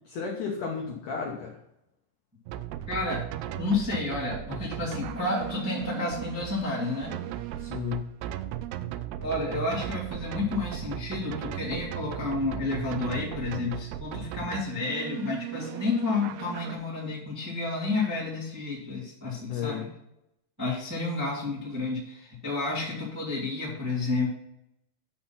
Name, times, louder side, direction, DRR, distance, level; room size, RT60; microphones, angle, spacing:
voice 1, 0.1-1.6 7.6-8.1 19.5-19.8, left 6 dB, 80° left, 0 dB, 1.8 m, -33 dB
sound 1, 2.5-16.8, right 12 dB, 90° right, 2.3 m, -37 dB
voice 2, 2.9-3.3 3.5-7.2 9.2-19.9 20.6-24.3, left 3 dB, 10° right, -5 dB, 0.9 m, -30 dB
9.2 x 4.4 x 5.6 m, 0.83 s
omnidirectional pair, 5.3 m